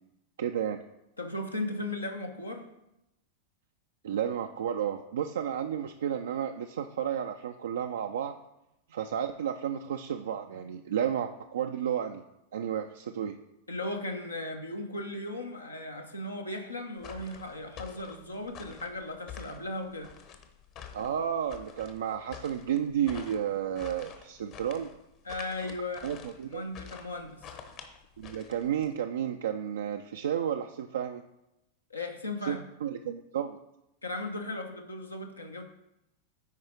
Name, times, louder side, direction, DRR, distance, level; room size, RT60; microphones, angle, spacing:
voice 1, 0.4-0.8 4.0-8.3 8.9-12.2 12.5-13.4 20.9-24.9 26.0-26.6 28.2-31.2 32.5-33.6, right 9 dB, 65° right, 5 dB, 0.4 m, -32 dB
voice 2, 1.2-2.7 13.7-20.1 25.2-26.2 26.5-27.4 31.9-32.6 34.0-35.6, left 2 dB, 80° left, 3 dB, 0.9 m, -37 dB
sound 1, 17.0-29.0, left 7 dB, 40° left, 1.0 m, -48 dB
9.5 x 4.7 x 4.5 m, 0.88 s
figure-of-eight pair, 90°, 0 cm